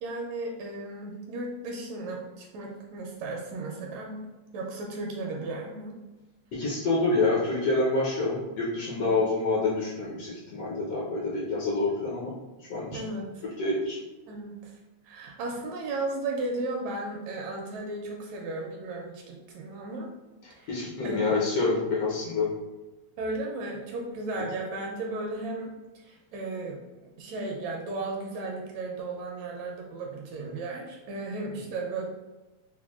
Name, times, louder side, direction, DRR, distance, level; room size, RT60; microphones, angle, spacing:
voice 1, 0.0-4.2 4.5-5.9 9.0-9.1 12.9-13.4 14.3-14.7 15.0-20.1 20.6-20.7 21.0-21.4 23.2-26.8 27.2-32.1, right 2 dB, 80° right, 0 dB, 1.7 m, -35 dB
voice 2, 6.5-12.3 12.6-13.1 13.6-14.0 20.4-22.5 24.3-24.4, left 3 dB, 75° left, -5 dB, 1.6 m, -27 dB
5.9 x 2.1 x 2.3 m, 1.1 s
omnidirectional pair, 3.4 m